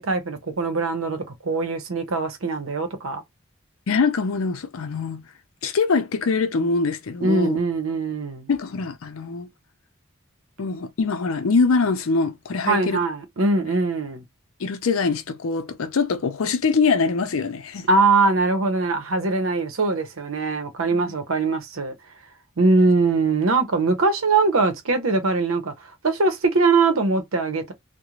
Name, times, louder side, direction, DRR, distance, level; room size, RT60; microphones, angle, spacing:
voice 1, 0.0-3.2 7.2-8.5 12.7-14.2 17.9-21.9 22.6-27.7, right 3 dB, 80° right, 0.7 m, -22 dB
voice 2, 3.9-5.2 5.6-7.6 8.5-9.5 10.6-13.0 14.6-17.9 20.9-21.2, left 4 dB, 80° left, 0.5 m, -23 dB
2.4 x 2.1 x 2.9 m
head